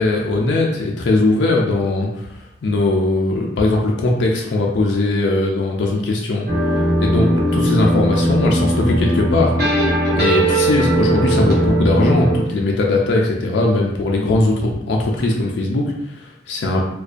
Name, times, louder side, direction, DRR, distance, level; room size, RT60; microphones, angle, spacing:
voice 1, 0.0-6.5 7.0-9.5 10.1-16.9, left 2 dB, 70° left, -1 dB, 0.4 m, -19 dB
sound 1, 6.5-12.4, right 1 dB, 60° right, 0.8 m, -18 dB
2.4 x 2.2 x 2.4 m, 0.84 s
head